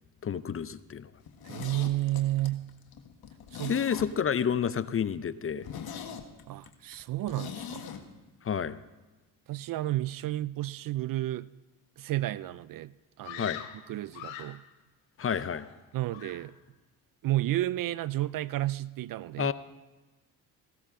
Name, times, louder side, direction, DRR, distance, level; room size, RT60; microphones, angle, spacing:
voice 1, 0.2-1.1 3.7-5.6 8.4-8.8 13.4-13.6 15.2-15.7 19.4-19.5, left 7 dB, 30° left, 15 dB, 0.6 m, -29 dB
Zipper (clothing), 1.2-4.5 4.8-4.9 5.2-5.3 5.6-8.0 8.3-8.4, left 7 dB, 55° left, 1.5 m, -42 dB
voice 2, 1.4-2.7 3.5-3.8 6.5-7.8 9.5-11.5 12.0-13.5 13.9-14.6 15.9-16.5 17.2-19.5, right 15 dB, 50° right, 19 dB, 0.4 m, -31 dB
Screaming, 13.2-14.7 15.2-15.9 16.1-16.6, left 11 dB, 85° left, 1.0 m, -43 dB
16.0 x 13.0 x 3.7 m, 1.2 s
supercardioid pair, 60°, 45 cm